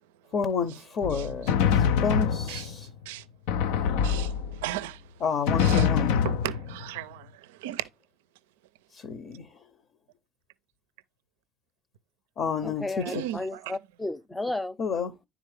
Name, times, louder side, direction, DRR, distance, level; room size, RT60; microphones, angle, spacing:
voice 1, 0.3-2.9 5.2-6.1 8.9-9.5 12.4-12.8 14.8-15.1, left 6 dB, 55° left, 0.8 m, -30 dB
Drum, 1.0-2.9 3.5-4.8 5.5-7.0, left 7 dB, 80° left, 0.4 m, -25 dB
voice 2, 1.1-1.5 2.5-3.3 4.0-5.2 5.6-5.9 6.2-7.9 13.1-13.7, right 13 dB, 85° right, 0.4 m, -37 dB
voice 3, 12.6-14.8, left 2 dB, 15° left, 0.6 m, -33 dB
10.0 x 3.7 x 3.3 m
hypercardioid pair, 70°, 0 cm